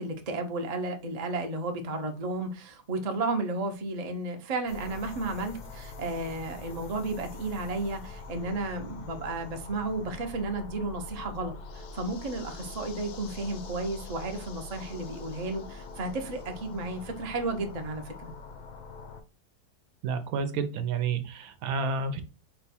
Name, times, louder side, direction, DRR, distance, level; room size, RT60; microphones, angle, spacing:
voice 1, 0.0-18.3, right 2 dB, 45° right, 0.5 m, -33 dB
sound 1, 4.7-19.2, left 3 dB, 85° left, 1.3 m, -44 dB
voice 2, 20.0-22.2, right 5 dB, 70° right, 1.0 m, -30 dB
4.4 x 2.2 x 4.1 m
omnidirectional pair, 1.6 m